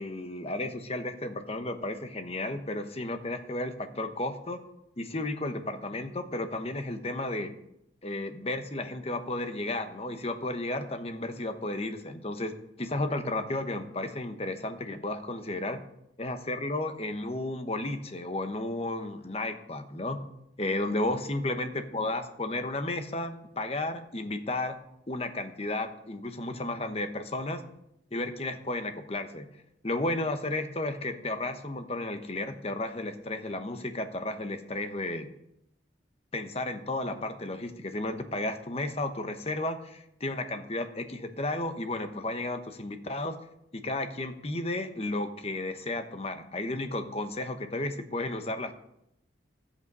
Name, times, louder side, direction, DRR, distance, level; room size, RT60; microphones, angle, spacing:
voice 1, 0.0-4.6 5.0-7.5 8.0-15.8 16.2-20.2 20.6-24.8 25.1-27.6 28.1-29.5 29.8-35.3 36.3-43.4 43.7-48.7, left 2 dB, 30° left, 7 dB, 1.1 m, -33 dB
13.5 x 8.4 x 5.5 m, 0.78 s
head